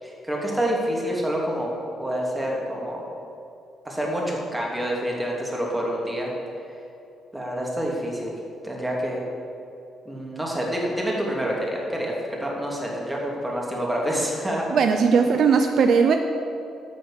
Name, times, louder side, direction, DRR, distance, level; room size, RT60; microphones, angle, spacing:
voice 1, 0.0-1.7 2.0-3.0 3.8-6.3 7.3-8.4 8.6-9.3 10.0-14.7, equal, 10° right, -2 dB, 2.7 m, -27 dB
voice 2, 14.7-16.2, right 5 dB, 65° right, 6 dB, 0.6 m, -18 dB
11.5 x 6.4 x 7.4 m, 2.7 s
cardioid pair, 90°, 0 cm